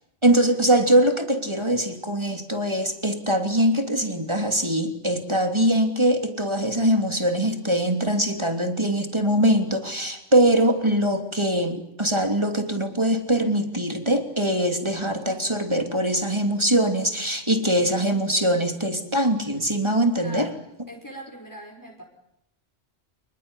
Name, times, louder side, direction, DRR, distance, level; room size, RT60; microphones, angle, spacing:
voice 1, 0.2-20.5, right 1 dB, 25° right, 5 dB, 3.2 m, -22 dB
voice 2, 20.2-20.5 20.9-22.0, right 1 dB, 15° left, 1 dB, 5.2 m, -40 dB
29.0 x 21.0 x 9.9 m, 0.78 s
omnidirectional pair, 1.2 m